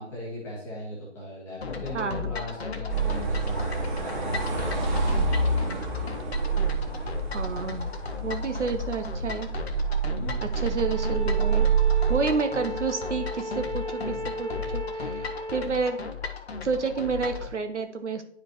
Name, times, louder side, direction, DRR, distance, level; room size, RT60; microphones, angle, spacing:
voice 1, 0.0-5.0 10.2-10.4, equal, 5° left, -5 dB, 1.2 m, -38 dB
sound 1, 1.6-17.5, left 6 dB, 55° left, 1.0 m, -35 dB
voice 2, 1.9-2.3 7.3-7.9 8.2-9.5 10.4-11.7 12.1-16.0 16.6-18.2, right 5 dB, 70° right, 7 dB, 1.1 m, -30 dB
sound 2, 2.9-12.2, right 5 dB, 40° right, 2.0 m, -27 dB
Bowed string instrument, 10.7-15.7, equal, 25° right, 1.5 m, -36 dB
9.9 x 5.0 x 3.0 m, 0.68 s
figure-of-eight pair, 155°, 37 cm